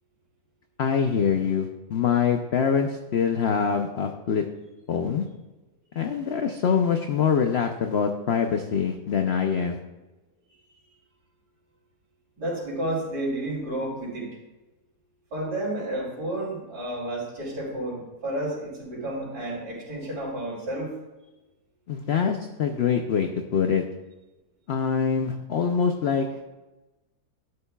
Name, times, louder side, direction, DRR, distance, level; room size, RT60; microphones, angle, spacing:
voice 1, 0.8-4.4 4.9-5.2 6.0-9.8 21.9-23.8 24.7-26.3, left 6 dB, 60° left, 5 dB, 0.6 m, -24 dB
voice 2, 12.4-14.4 15.3-20.9, right 1 dB, 80° right, -10 dB, 3.8 m, -31 dB
12.5 x 9.7 x 2.3 m, 1.1 s
omnidirectional pair, 1.7 m